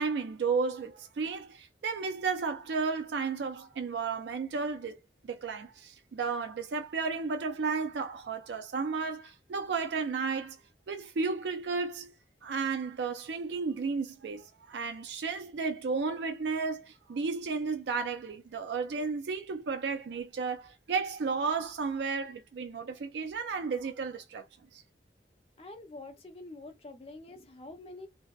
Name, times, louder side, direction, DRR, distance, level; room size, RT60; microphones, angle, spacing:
voice 1, 0.0-5.0 5.2-10.6 10.9-12.1 12.4-24.4 24.7-24.8, right 4 dB, 80° right, 0.4 m, -33 dB
voice 2, 25.6-28.1, left 2 dB, 30° left, 0.5 m, -46 dB
2.7 x 2.1 x 2.3 m
head